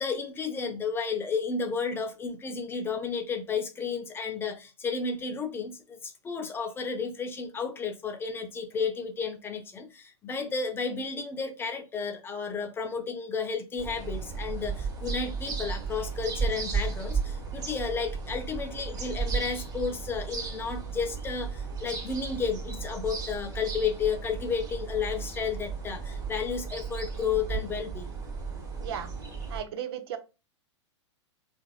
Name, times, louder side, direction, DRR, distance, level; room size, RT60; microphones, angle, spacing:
voice 1, 0.0-28.1, left 5 dB, 15° left, 0.4 m, -32 dB
sound 1, 13.8-29.6, right 5 dB, 25° right, 1.1 m, -34 dB
voice 2, 28.8-29.1 29.5-30.2, right 9 dB, 55° right, 0.5 m, -35 dB
3.8 x 2.6 x 2.2 m
hypercardioid pair, 110°, 15 cm